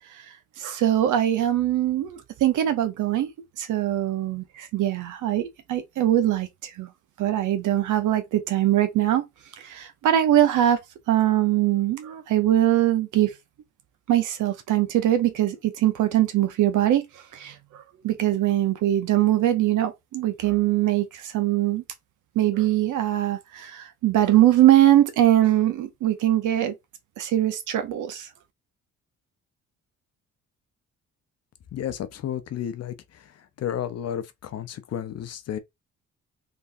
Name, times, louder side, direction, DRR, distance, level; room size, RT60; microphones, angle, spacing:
voice 1, 0.6-3.3 3.6-6.9 7.2-9.2 9.6-10.8 11.1-13.3 14.1-17.0 17.3-21.8 22.4-26.7 27.2-28.3, right 13 dB, 80° right, 0.8 m, -22 dB
voice 2, 31.7-35.6, left 10 dB, 55° left, 0.7 m, -32 dB
3.4 x 3.1 x 2.6 m
cardioid pair, 90°, 30 cm